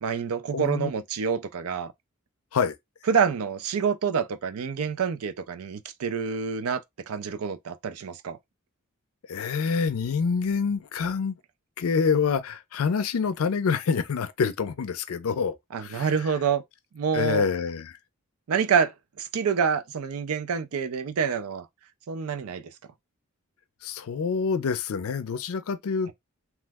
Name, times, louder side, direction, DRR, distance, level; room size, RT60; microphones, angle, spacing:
voice 1, 0.0-1.9 3.1-8.4 15.7-16.6 16.9-17.5 18.5-21.7 22.1-22.7, right 6 dB, 85° right, 0.4 m, -27 dB
voice 2, 0.5-0.9 2.5-2.7 9.3-11.3 11.8-16.1 17.1-18.0 23.8-26.1, left 5 dB, 75° left, 0.4 m, -26 dB
3.0 x 2.0 x 3.4 m
head